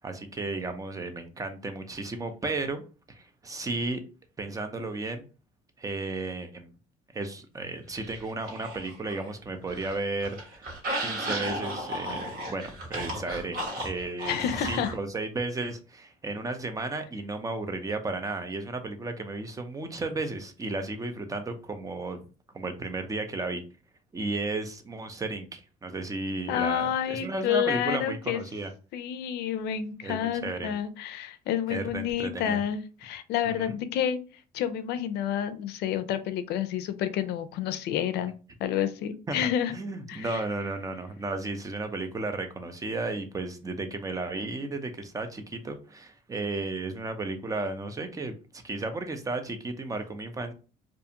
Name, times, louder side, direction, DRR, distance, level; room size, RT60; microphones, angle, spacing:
voice 1, 0.0-2.8 3.1-4.0 4.4-5.3 5.8-6.7 7.1-10.7 11.0-22.2 22.5-23.6 24.1-28.7 30.0-30.7 31.7-32.6 33.5-33.8 39.3-48.3 48.6-50.5, right 3 dB, 20° right, 7 dB, 0.5 m, -34 dB
sound 1, 7.9-9.3 9.6-15.0, right 1 dB, 55° right, 1.3 m, -35 dB
voice 2, 14.3-14.9 26.5-28.4 28.9-34.2 34.5-38.3 38.6-39.7 40.1-40.4, left 10 dB, 75° left, 12 dB, 0.4 m, -29 dB
2.5 x 2.3 x 2.8 m, 0.35 s
cardioid pair, 110°, 17 cm